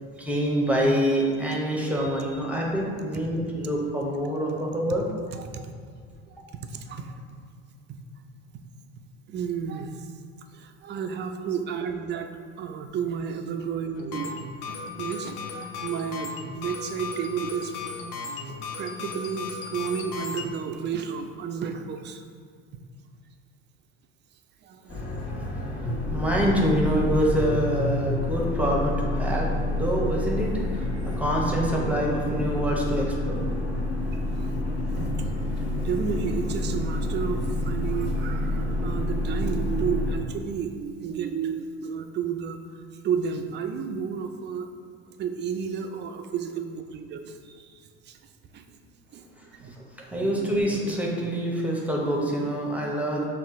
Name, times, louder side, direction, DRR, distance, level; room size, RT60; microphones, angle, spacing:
voice 1, 0.2-5.1 26.1-33.8 50.1-53.2, equal, 5° right, -2 dB, 0.8 m, -26 dB
voice 2, 5.3-5.7 6.3-7.2 7.9-8.0 9.3-10.1 10.5-17.7 18.8-22.2 22.7-22.8 24.6-25.0 34.1-34.6 35.2-35.3 35.8-42.6 43.0-44.7 45.1-48.2 48.5-48.6 49.1-49.2 49.6-49.8, right 6 dB, 35° right, 6 dB, 0.4 m, -32 dB
sound 1, 13.9-20.5, left 4 dB, 70° left, 0.6 m, -36 dB
sound 2, 24.9-40.2, left 1 dB, 35° left, 1.2 m, -28 dB
5.4 x 2.4 x 3.6 m, 2.1 s
hypercardioid pair, 85°, 32 cm